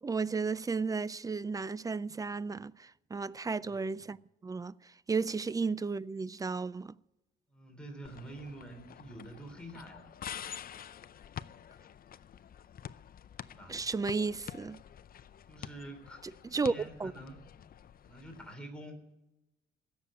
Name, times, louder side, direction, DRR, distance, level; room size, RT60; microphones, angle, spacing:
voice 1, 0.0-4.2 4.4-4.7 5.1-6.9 13.7-14.8 16.5-16.7 17.0-17.1, right 4 dB, 15° right, 0.4 m, -33 dB
voice 2, 3.6-3.9 7.5-10.1 13.5-13.8 15.5-17.5 18.0-19.1, right 1 dB, 5° left, 3.6 m, -48 dB
sound 1, 8.1-18.5, left 9 dB, 50° left, 0.6 m, -48 dB
16.5 x 7.2 x 10.0 m
cardioid pair, 90°, 20 cm